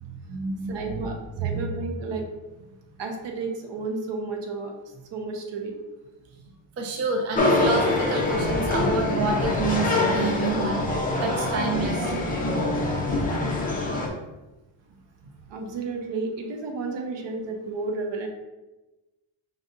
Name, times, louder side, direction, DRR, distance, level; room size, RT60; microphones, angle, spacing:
voice 1, 0.0-1.1 1.4-1.7 6.8-12.1 13.3-13.4, right 3 dB, 35° right, 2 dB, 0.4 m, -29 dB
voice 2, 0.7-2.3 3.0-4.7 5.1-5.8 15.5-18.3, right 3 dB, 60° right, 3 dB, 0.9 m, -32 dB
sound 1, 7.3-14.1, left 2 dB, 15° left, 0.7 m, -24 dB
5.2 x 2.7 x 3.7 m, 1.1 s
cardioid pair, 155°, 50 cm